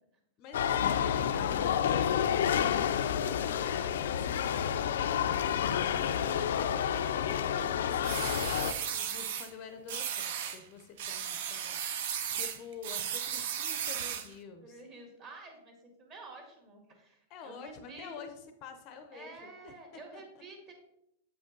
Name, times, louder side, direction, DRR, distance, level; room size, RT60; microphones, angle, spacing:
voice 1, 0.4-6.3 7.0-14.8 17.3-19.8 20.1-20.2, left 6 dB, 35° left, 7 dB, 0.6 m, -48 dB
sound 1, 0.5-8.7, left 9 dB, 75° left, 0.4 m, -29 dB
sound 2, 8.0-9.5 9.9-10.6 11.0-14.3, right 8 dB, 55° right, 0.7 m, -35 dB
voice 2, 14.6-18.2 19.1-20.7, right 3 dB, 30° right, 2 dB, 1.7 m, -50 dB
7.9 x 5.2 x 3.8 m, 0.80 s
supercardioid pair, 165°, 0 cm